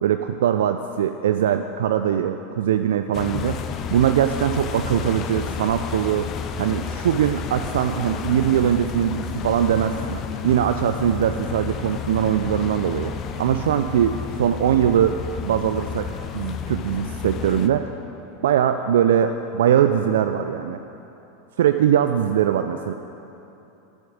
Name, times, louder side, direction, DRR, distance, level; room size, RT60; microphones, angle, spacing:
voice 1, 0.0-3.6 3.9-6.3 6.6-15.2 15.4-16.1 16.3-17.9 18.4-20.8 21.6-22.9, right 9 dB, 70° right, 8 dB, 0.4 m, -21 dB
sound 1, 3.1-17.7, left 7 dB, 40° left, 0.8 m, -31 dB
11.5 x 7.1 x 9.2 m, 3.0 s
hypercardioid pair, 90°, 0 cm